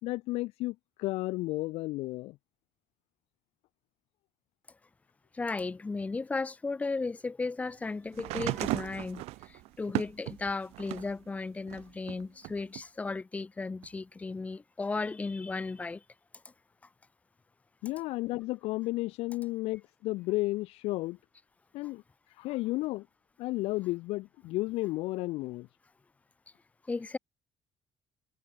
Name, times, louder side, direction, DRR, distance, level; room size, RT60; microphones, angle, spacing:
voice 1, 0.0-2.4 17.8-21.2 21.7-22.0 22.4-23.0 23.4-25.7, left 19 dB, 75° left, 2.3 m, -33 dB
voice 2, 5.3-16.0 26.9-27.2, left 3 dB, 15° left, 7.8 m, -35 dB
sound 1, 8.1-11.2 11.7-12.8 13.8-13.9, right 20 dB, 80° right, 4.6 m, -36 dB
cardioid pair, 180°, 10 cm